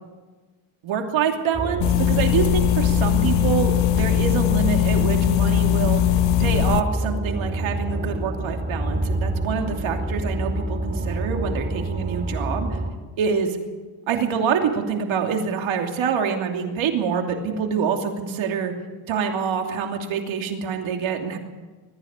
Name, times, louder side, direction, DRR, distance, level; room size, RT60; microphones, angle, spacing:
voice 1, 0.8-6.0 6.4-12.8 13.2-13.6 14.1-18.7 19.1-21.4, right 6 dB, 70° right, 3 dB, 2.9 m, -26 dB
sound 1, 1.5-12.9, right 1 dB, 20° right, 2.7 m, -27 dB
sound 2, 1.8-6.8, left 16 dB, 65° left, 0.9 m, -20 dB
21.0 x 14.0 x 8.9 m, 1.3 s
cardioid pair, 120°, 48 cm